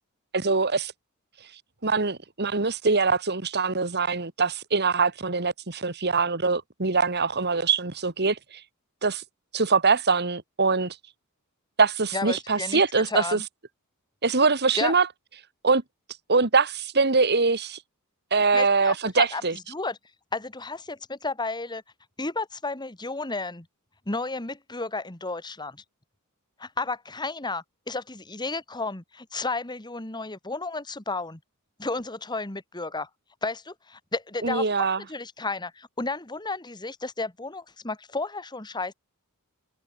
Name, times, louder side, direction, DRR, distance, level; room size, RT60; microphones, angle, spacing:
voice 1, 0.3-0.9 1.8-8.6 9.0-9.2 9.5-11.0 11.8-13.4 14.2-15.1 15.6-15.8 16.3-17.8 18.3-19.6 34.4-35.0, right 4 dB, 50° right, 2.0 m, -23 dB
voice 2, 12.1-13.4 14.8-14.9 18.5-19.4 19.7-20.0 20.3-21.8 22.2-23.7 24.1-25.8 26.6-31.4 31.8-33.1 33.4-38.9, left 3 dB, 20° left, 1.7 m, -32 dB
head